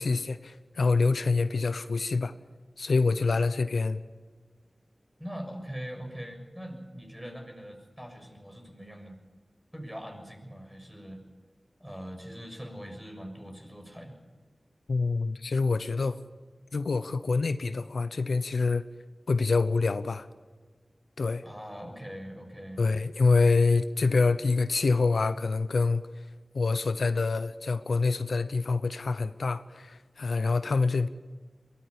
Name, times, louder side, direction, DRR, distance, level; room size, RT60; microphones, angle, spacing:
voice 1, 0.0-2.3 2.8-4.0 14.9-16.2 16.7-18.8 19.3-20.3 21.2-21.4 22.8-26.0 26.5-31.1, left 4 dB, 90° left, 0.8 m, -26 dB
voice 2, 5.2-9.2 9.7-11.2 11.8-14.2 21.4-22.8, equal, 5° right, 6.7 m, -42 dB
22.5 x 15.5 x 8.6 m
wide cardioid pair, 50°, 0 cm